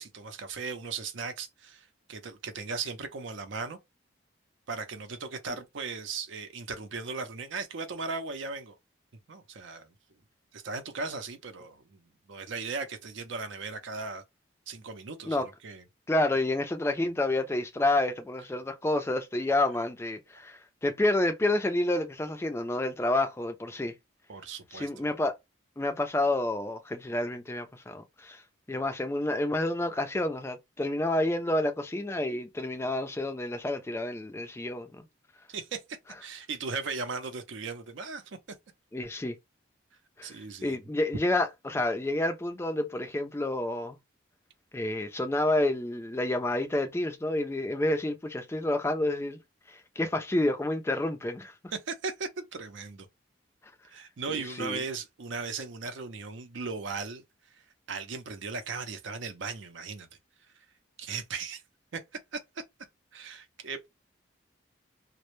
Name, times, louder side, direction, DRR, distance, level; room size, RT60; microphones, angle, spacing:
voice 1, 0.0-3.8 4.7-8.8 9.3-9.9 10.5-14.2 14.7-15.8 24.3-25.1 35.5-35.8 36.2-38.4 40.2-40.8 51.7-53.1 53.9-57.2 57.5-57.6 57.9-60.1 61.0-61.6 61.9-62.0 62.3-62.4 63.1-63.9, right 4 dB, 70° right, 0.5 m, -37 dB
voice 2, 16.1-23.9 24.7-25.3 25.8-28.4 28.7-35.0 38.9-39.4 40.2-40.3 40.6-44.0 44.7-49.4 49.7-51.5 54.3-54.8, left 1 dB, 15° left, 0.3 m, -29 dB
2.1 x 2.0 x 2.9 m
head